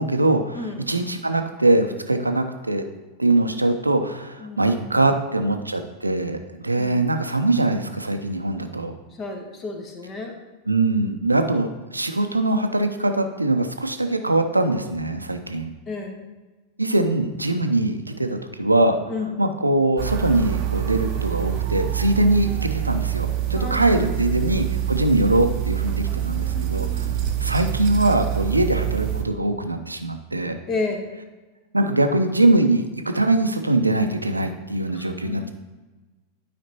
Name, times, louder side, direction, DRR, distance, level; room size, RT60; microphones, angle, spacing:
voice 1, 0.0-2.8 3.2-8.9 10.7-15.7 16.8-19.0 19.4-27.1 27.4-30.6 31.7-35.5, right 2 dB, 85° right, 7 dB, 0.6 m, -22 dB
voice 2, 0.5-0.9 4.4-5.0 9.2-10.3 15.9-16.2 19.1-19.3 23.5-24.3 26.0-27.1 30.7-31.1 34.9-35.5, left 3 dB, 25° left, 4 dB, 1.3 m, -33 dB
sound 1, 20.0-29.2, right 11 dB, 40° right, 0.8 m, -26 dB
12.0 x 5.1 x 2.9 m, 1.2 s
figure-of-eight pair, 90°, 0 cm